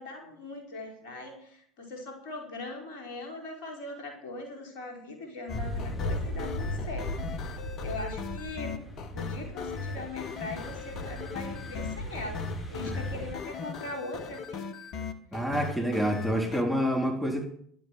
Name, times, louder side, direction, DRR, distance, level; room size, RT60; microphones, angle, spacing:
voice 1, 0.0-8.8 9.1-14.8, left 2 dB, 65° left, 1 dB, 5.0 m, -41 dB
sound 1, 5.5-16.6, left 5 dB, 45° left, 1.5 m, -38 dB
sound 2, 5.5-13.4, equal, 20° left, 4.7 m, -37 dB
voice 2, 15.3-17.4, equal, ahead, 0 dB, 3.6 m, -28 dB
12.0 x 9.3 x 9.4 m, 0.64 s
figure-of-eight pair, 65°, 0 cm